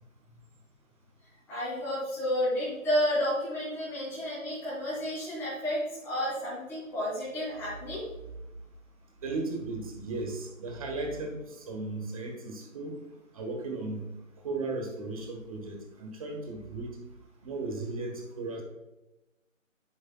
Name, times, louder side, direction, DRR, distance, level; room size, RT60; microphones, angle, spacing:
voice 1, 1.5-8.0, equal, 5° left, -13 dB, 3.0 m, -31 dB
voice 2, 9.2-13.0 13.3-14.0 14.4-17.0 17.4-18.6, right 3 dB, 25° right, 2 dB, 1.2 m, -36 dB
9.8 x 7.9 x 2.2 m, 0.98 s
figure-of-eight pair, 155°, 40 cm